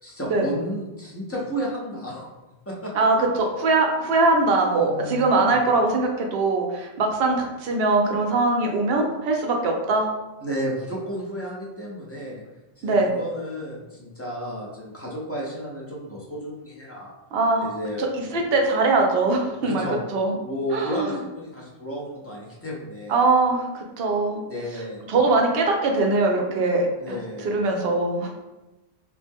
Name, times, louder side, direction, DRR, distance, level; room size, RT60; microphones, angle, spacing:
voice 1, 0.0-2.3 2.7-3.1 4.8-5.6 10.4-12.4 12.8-17.1 17.6-18.0 19.6-20.0 20.4-23.2 24.5-25.0 27.0-27.6, equal, 20° left, -4 dB, 0.5 m, -32 dB
voice 2, 2.9-10.1 12.8-13.1 17.3-17.7 18.0-18.1 18.3-19.8 20.1-20.3 20.7-21.2 23.1-24.4 25.1-27.2 27.4-28.3, right 3 dB, 70° right, 2 dB, 0.8 m, -22 dB
2.9 x 2.1 x 3.5 m, 1.0 s
omnidirectional pair, 1.1 m